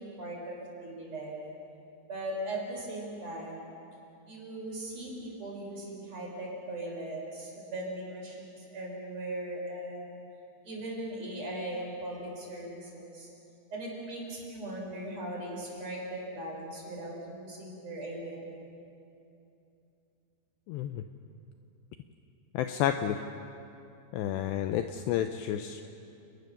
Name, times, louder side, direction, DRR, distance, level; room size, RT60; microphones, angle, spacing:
voice 1, 0.0-1.4 2.1-3.7 4.2-10.1 10.6-13.3 13.7-18.4, right 1 dB, 35° right, -2 dB, 5.5 m, -39 dB
voice 2, 20.7-21.0 22.5-23.2 24.1-25.8, left 10 dB, 80° left, 8 dB, 2.6 m, -30 dB
29.5 x 20.0 x 6.7 m, 2.7 s
omnidirectional pair, 5.4 m